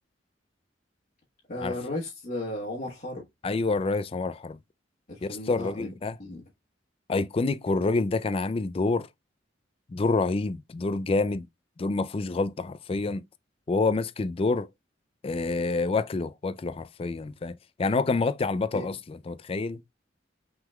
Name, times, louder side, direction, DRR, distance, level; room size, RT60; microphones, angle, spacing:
voice 1, 1.5-3.2 5.1-5.9 6.2-6.4 18.7-18.8, left 1 dB, 50° left, 1.3 m, -35 dB
voice 2, 3.4-4.6 5.2-6.2 7.1-9.1 9.9-11.5 11.8-13.2 13.7-14.7 15.2-19.8, left 3 dB, 30° left, 0.3 m, -27 dB
5.9 x 3.7 x 2.2 m
head